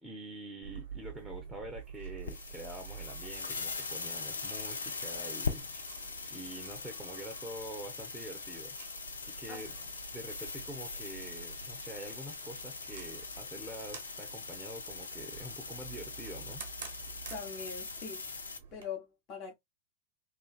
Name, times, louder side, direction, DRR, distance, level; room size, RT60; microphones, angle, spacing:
voice 1, 0.0-6.0 6.3-9.7 10.1-16.6, right 1 dB, 10° right, 0.6 m, -46 dB
sound 1, 0.6-18.9, right 7 dB, 55° right, 0.6 m, -50 dB
sound 2, 2.2-18.6, left 4 dB, 75° left, 0.4 m, -41 dB
voice 2, 9.5-9.9 17.3-18.4 18.7-19.5, left 5 dB, 35° left, 0.9 m, -43 dB
2.4 x 2.3 x 2.3 m
figure-of-eight pair, 90°, 0 cm